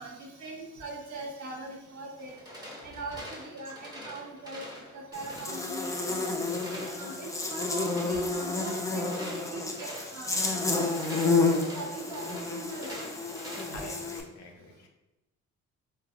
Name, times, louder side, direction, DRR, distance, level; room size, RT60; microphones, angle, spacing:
voice 1, 0.0-2.3 2.8-4.6 4.9-6.2 6.7-11.3 11.7-13.0, right 2 dB, 70° right, 0 dB, 0.8 m, -41 dB
sound 1, 2.2-13.8, equal, 15° right, 0.9 m, -45 dB
Buzz, 5.1-14.2, left 3 dB, 10° left, 0.3 m, -30 dB
voice 2, 13.6-14.9, left 2 dB, 65° left, 3 dB, 0.6 m, -46 dB
3.2 x 2.2 x 2.4 m, 0.97 s
cardioid pair, 90°, 30 cm